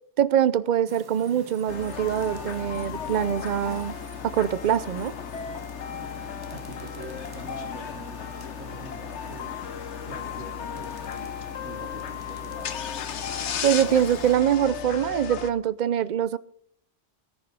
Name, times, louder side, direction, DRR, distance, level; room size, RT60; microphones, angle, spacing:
voice 1, 0.2-3.9 4.2-5.1 13.6-16.4, right 9 dB, 45° right, 0.6 m, -24 dB
sound 1, 0.9-14.4, right 2 dB, 20° right, 1.3 m, -48 dB
sound 2, 1.7-15.5, left 7 dB, 65° left, 1.1 m, -35 dB
voice 2, 6.5-8.2 8.6-9.5 10.1-12.8, right 3 dB, 75° right, 2.2 m, -44 dB
17.0 x 10.5 x 5.4 m
omnidirectional pair, 1.3 m